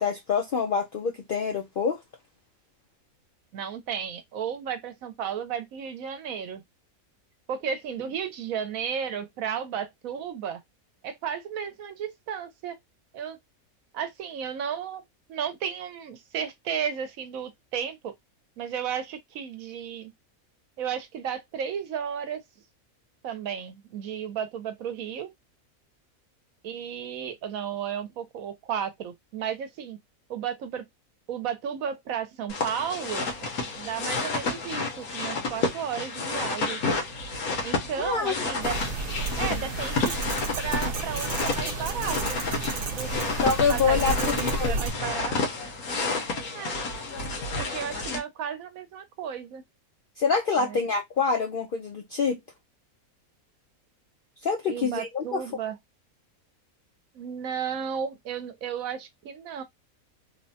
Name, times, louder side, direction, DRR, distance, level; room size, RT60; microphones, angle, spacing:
voice 1, 0.0-2.0 38.0-38.5 43.4-44.7 50.2-52.4 54.4-55.4, left 5 dB, 70° left, 0.5 m, -26 dB
voice 2, 3.5-6.6 7.5-10.6 11.0-12.8 13.1-13.4 13.9-15.0 15.3-18.1 18.6-20.1 20.8-22.4 23.2-25.3 26.6-30.0 30.3-30.8 31.3-33.3 33.8-36.8 37.6-38.8 39.4-40.2 40.6-43.3 43.7-45.4 46.5-46.8 47.6-49.6 50.6-50.8 54.7-55.8 57.1-59.6, right 8 dB, 75° right, 1.1 m, -33 dB
sound 1, 32.5-48.2, left 3 dB, 90° left, 1.4 m, -30 dB
sound 2, 38.6-44.9, right 3 dB, 55° right, 0.6 m, -32 dB
3.4 x 2.1 x 2.7 m
omnidirectional pair, 1.5 m